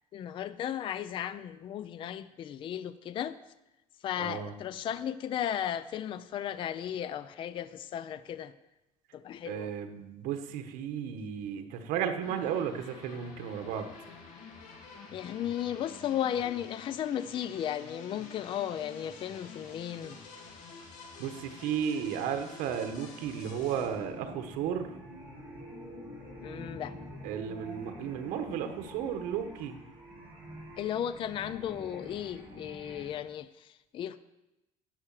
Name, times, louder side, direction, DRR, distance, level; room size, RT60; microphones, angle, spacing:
voice 1, 0.1-3.4 4.0-8.5 9.1-9.7 15.1-20.2 26.4-27.0 30.8-34.2, left 10 dB, 35° left, 14 dB, 0.4 m, -35 dB
voice 2, 4.2-4.5 9.4-13.9 21.2-24.9 27.2-29.8, right 8 dB, 90° right, 7 dB, 1.3 m, -34 dB
sound 1, 12.2-29.1, left 4 dB, 60° left, 2.5 m, -49 dB
sound 2, 23.6-33.1, right 1 dB, 10° right, 5.2 m, -48 dB
11.5 x 7.7 x 7.4 m, 0.96 s
cardioid pair, 160°, 14 cm